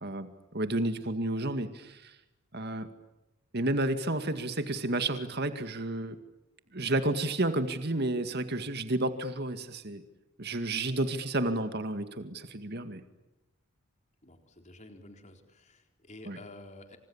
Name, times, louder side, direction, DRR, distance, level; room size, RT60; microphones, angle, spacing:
voice 1, 0.0-2.2 2.5-2.9 3.5-6.2 6.7-10.0 10.4-13.0 16.3-16.4, right 2 dB, 45° right, 9 dB, 2.1 m, -31 dB
voice 2, 14.2-17.0, left 2 dB, 30° left, 5 dB, 4.0 m, -50 dB
29.5 x 27.0 x 7.3 m, 0.95 s
head